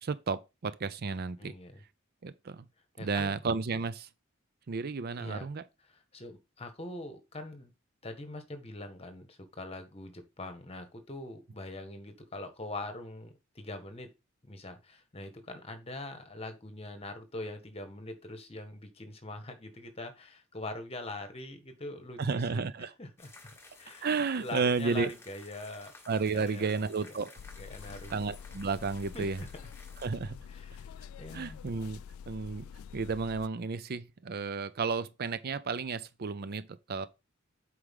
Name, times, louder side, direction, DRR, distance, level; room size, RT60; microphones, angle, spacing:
voice 1, 0.0-1.5 2.2-2.6 3.0-4.1 4.7-5.6 22.2-22.9 24.0-25.1 26.1-27.3 28.1-29.4 30.0-30.3 31.3-32.0 32.3-32.7 32.9-37.1, right 4 dB, 45° right, 0.5 m, -32 dB
voice 2, 1.4-1.8 3.0-3.4 5.2-5.5 5.9-7.7 8.0-14.1 14.4-23.3 23.8-24.1 24.4-25.9 26.3-26.7 27.0-27.2 27.6-28.1 29.1-29.5 30.5-31.6, left 2 dB, 30° left, 1.4 m, -43 dB
sound 1, 23.2-30.1, left 3 dB, 10° left, 1.4 m, -55 dB
sound 2, 27.4-33.5, left 7 dB, 80° left, 0.3 m, -47 dB
8.0 x 5.0 x 3.6 m
head